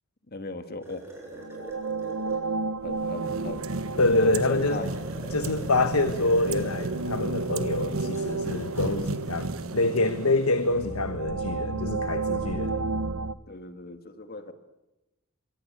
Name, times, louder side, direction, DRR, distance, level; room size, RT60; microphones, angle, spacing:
voice 1, 0.3-1.1 2.8-3.8 4.2-4.9 10.2-10.4 12.3-12.8 13.5-14.5, left 2 dB, 45° left, 9 dB, 2.0 m, -38 dB
sound 1, 0.8-2.5 4.4-7.0 7.6-10.5, equal, 10° right, 6.7 m, -44 dB
sound 2, 1.3-13.3, right 3 dB, 85° right, 1.0 m, -33 dB
sound 3, 2.9-11.2, right 3 dB, 70° right, 1.4 m, -35 dB
voice 2, 4.0-4.8 5.3-12.9, left 2 dB, 80° left, 10 dB, 1.4 m, -26 dB
26.0 x 24.0 x 8.3 m, 0.97 s
head